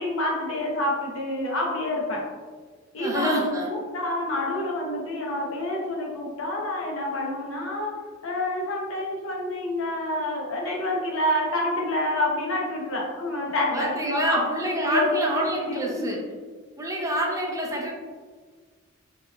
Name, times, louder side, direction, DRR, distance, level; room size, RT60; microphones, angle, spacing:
voice 1, 0.0-2.2 2.9-7.9 8.2-14.4 14.8-16.0, left 1 dB, 75° left, -1 dB, 0.8 m, -28 dB
voice 2, 3.0-3.7 13.7-16.2 16.8-17.9, right 1 dB, 15° right, -1 dB, 0.4 m, -27 dB
4.4 x 2.8 x 2.2 m, 1.5 s
head